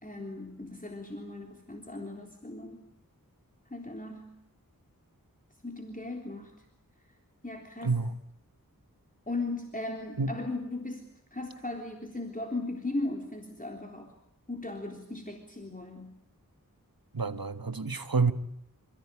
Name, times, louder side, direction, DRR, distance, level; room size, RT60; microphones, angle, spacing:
voice 1, 0.0-2.9 3.7-4.3 5.6-6.5 7.4-8.0 9.3-14.1 14.5-16.1, left 2 dB, 25° left, 3.6 m, -37 dB
voice 2, 7.8-8.1 10.2-10.3 17.1-18.3, right 4 dB, 80° right, 1.5 m, -28 dB
28.0 x 16.0 x 9.9 m
wide cardioid pair, 40°, 35 cm